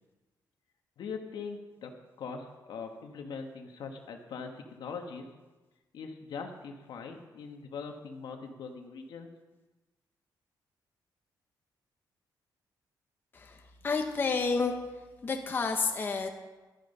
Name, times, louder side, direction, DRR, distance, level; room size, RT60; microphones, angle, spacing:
voice 1, 1.0-1.9 2.2-5.3 5.9-9.3, left 5 dB, 70° left, 4 dB, 1.6 m, -41 dB
voice 2, 13.8-14.7 15.2-16.3, left 4 dB, 30° left, 3 dB, 1.0 m, -29 dB
12.5 x 11.0 x 5.5 m, 1.2 s
wide cardioid pair, 155°, 8 cm